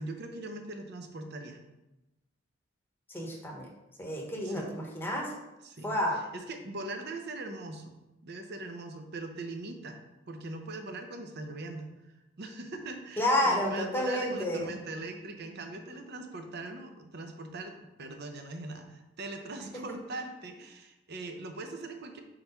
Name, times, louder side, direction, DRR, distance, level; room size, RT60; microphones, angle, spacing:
voice 1, 0.0-1.6 4.4-4.7 5.6-7.9 8.2-10.0 10.3-11.9 12.4-22.2, right 2 dB, 55° right, 5 dB, 0.7 m, -41 dB
voice 2, 3.1-3.7 4.0-5.3 5.8-6.2 13.2-14.6 19.7-20.0, left 1 dB, 10° left, -1 dB, 1.0 m, -30 dB
4.5 x 3.9 x 5.3 m, 0.98 s
head